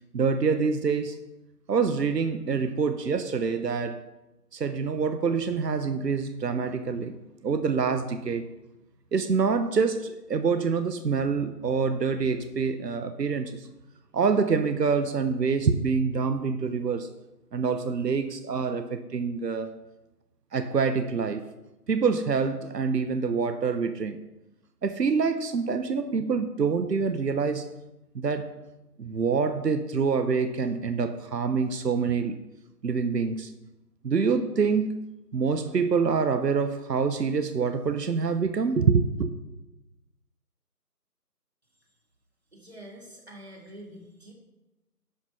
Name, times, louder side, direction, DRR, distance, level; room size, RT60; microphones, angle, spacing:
voice 1, 0.1-1.2 1.7-4.0 4.5-7.2 7.4-8.5 9.1-13.7 14.1-17.1 17.5-19.7 20.5-21.4 21.9-24.2 24.8-27.7 28.1-28.6 29.0-32.4 32.8-33.5 34.0-35.0 35.3-39.3, right 5 dB, 85° right, 0.8 m, -26 dB
voice 2, 42.5-44.3, right 1 dB, 40° right, 2.2 m, -46 dB
11.0 x 4.5 x 5.4 m
figure-of-eight pair, 180°, 48 cm